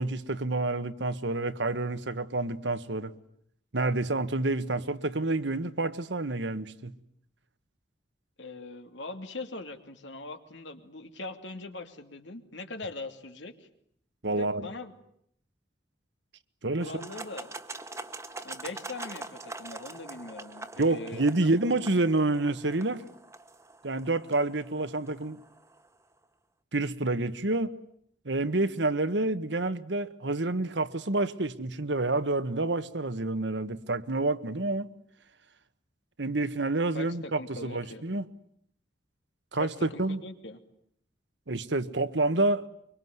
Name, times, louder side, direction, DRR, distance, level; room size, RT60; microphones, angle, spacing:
voice 1, 0.0-3.1 3.7-6.9 14.2-14.6 16.6-17.0 20.8-23.0 23.8-25.4 26.7-27.7 28.2-34.9 36.2-38.3 39.5-40.2 41.5-42.7, right 2 dB, 70° right, 1.4 m, -28 dB
voice 2, 8.4-13.5 14.3-14.9 16.8-17.5 18.4-21.5 36.9-38.0 39.6-40.6, left 2 dB, 75° left, 2.8 m, -41 dB
sound 1, 16.8-25.9, right 2 dB, 15° right, 1.5 m, -44 dB
24.5 x 24.0 x 9.6 m
head